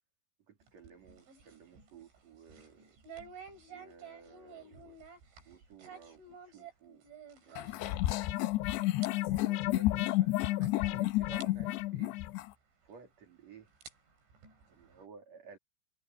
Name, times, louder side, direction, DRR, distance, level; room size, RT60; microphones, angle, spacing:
voice 1, 0.5-3.0 3.7-5.0 5.5-7.1 7.4-8.0 9.2-12.2 12.8-13.7 14.7-15.6, right 6 dB, 40° right, 3.9 m, -55 dB
sound 1, 0.6-8.6 8.8-9.1 9.4-9.5 10.3-10.4 10.9-11.0 11.4-11.5 12.9-13.0 13.6-15.0, right 6 dB, 70° right, 9.4 m, -52 dB
sound 2, 7.6-12.5, left 17 dB, 85° left, 2.6 m, -31 dB
omnidirectional pair, 5.5 m